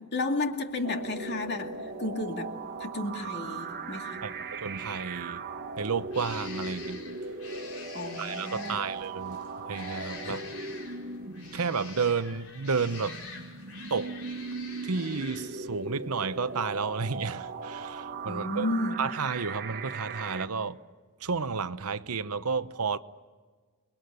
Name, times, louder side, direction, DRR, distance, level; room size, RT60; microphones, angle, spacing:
voice 1, 0.0-2.5 2.8-4.2 7.9-8.8 10.3-10.4 18.3-19.0, left 2 dB, 50° left, 2.3 m, -32 dB
sound 1, 0.7-18.8, left 4 dB, 80° left, 5.0 m, -48 dB
sound 2, 0.8-20.5, right 4 dB, 50° right, 1.4 m, -39 dB
voice 2, 4.2-5.4 5.8-7.0 8.2-9.4 9.7-10.4 11.5-13.2 13.9-14.2 14.8-18.7 19.0-20.8 21.2-23.0, right 5 dB, 80° right, 0.9 m, -31 dB
29.5 x 21.0 x 9.4 m
head